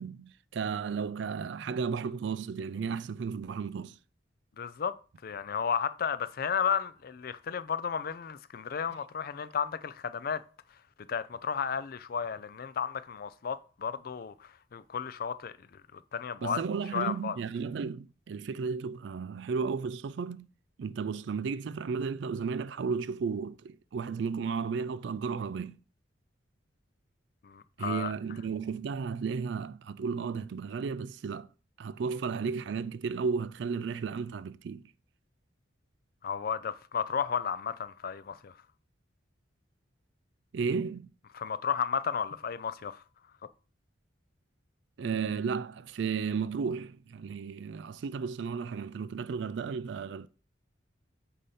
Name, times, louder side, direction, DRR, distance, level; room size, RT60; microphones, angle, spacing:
voice 1, 0.0-4.0 16.4-20.5 20.8-25.8 27.8-31.5 31.8-34.8 40.5-41.1 45.0-50.3, right 5 dB, 65° right, 0.3 m, -34 dB
voice 2, 4.6-5.0 5.2-10.4 11.1-15.5 15.9-16.6 16.9-17.4 27.4-28.1 36.2-38.5 41.3-43.0, left 7 dB, 50° left, 0.4 m, -33 dB
8.3 x 2.8 x 5.5 m
head